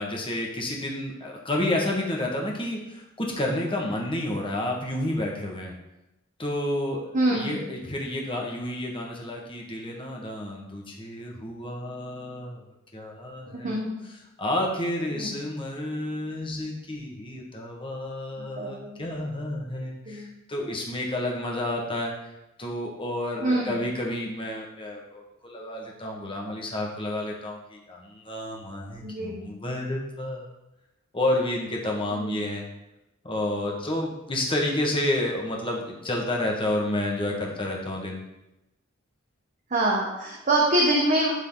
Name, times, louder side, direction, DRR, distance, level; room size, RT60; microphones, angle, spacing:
voice 1, 0.0-5.7 6.4-12.6 12.9-22.3 22.6-30.5 31.1-32.6 33.2-38.2, left 1 dB, 25° left, -1 dB, 1.5 m, -30 dB
voice 2, 7.1-7.7 13.5-14.0 15.1-15.3 18.4-19.0 20.1-20.3 23.4-23.7 29.0-29.5 32.2-32.4 39.7-41.3, right 1 dB, 40° right, -2 dB, 1.1 m, -25 dB
12.0 x 4.1 x 4.0 m, 0.93 s
head